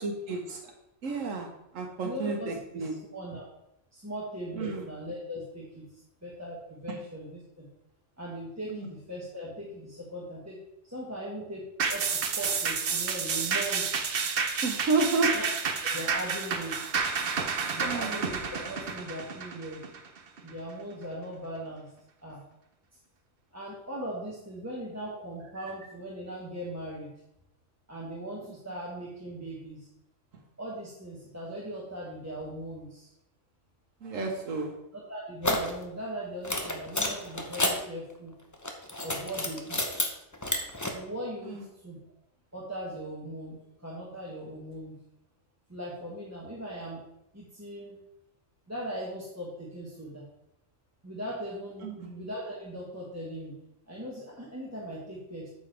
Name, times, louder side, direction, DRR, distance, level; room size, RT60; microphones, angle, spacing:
voice 1, 0.0-0.6 1.0-1.5 1.7-2.9 4.6-4.8 8.7-8.9 14.6-15.3 17.8-18.1 34.0-34.7 51.8-51.9, right 3 dB, 85° right, 2 dB, 1.3 m, -30 dB
voice 2, 2.0-3.5 3.9-5.9 6.2-7.7 8.2-10.6 10.8-14.1 15.3-15.5 15.9-17.0 17.7-19.8 20.4-21.9 22.2-22.4 23.5-27.1 27.9-29.9 30.6-33.1 34.9-38.4 39.0-40.1 40.9-42.0 42.5-44.9 45.7-47.0 47.3-48.0 48.7-50.2 51.0-53.5 53.9-55.5, right 1 dB, 15° right, -6 dB, 1.4 m, -39 dB
sound 1, 11.8-20.5 20.9-21.0, right 5 dB, 50° right, 0.9 m, -30 dB
sound 2, 35.4-35.7 36.4-37.8 38.5-40.1 40.3-40.9, left 1 dB, 15° left, 0.8 m, -29 dB
8.5 x 6.9 x 3.3 m, 0.85 s
omnidirectional pair, 1.3 m